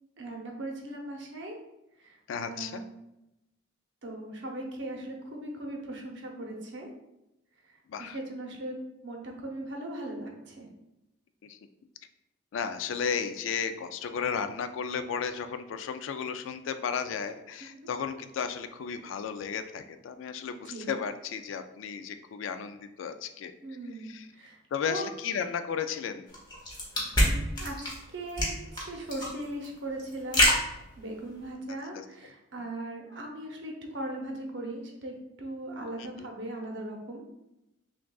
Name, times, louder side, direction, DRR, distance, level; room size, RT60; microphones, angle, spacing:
voice 1, 0.2-1.6 2.0-2.2 2.5-2.9 4.0-6.9 8.0-8.7 9.0-10.7 17.6-17.9 20.7-20.9 23.6-24.6 24.8-25.1 27.2-27.7 28.1-30.6 31.0-37.2, right 1 dB, 60° right, 0 dB, 0.8 m, -39 dB
voice 2, 2.3-2.8 7.9-8.2 11.4-11.6 12.5-23.5 24.0-24.3 24.7-26.3 31.7-32.0 36.0-36.3, left 6 dB, 75° left, 10 dB, 0.3 m, -34 dB
sound 1, 26.3-31.5, left 1 dB, 20° left, 0.9 m, -27 dB
6.1 x 2.3 x 2.3 m, 0.91 s
head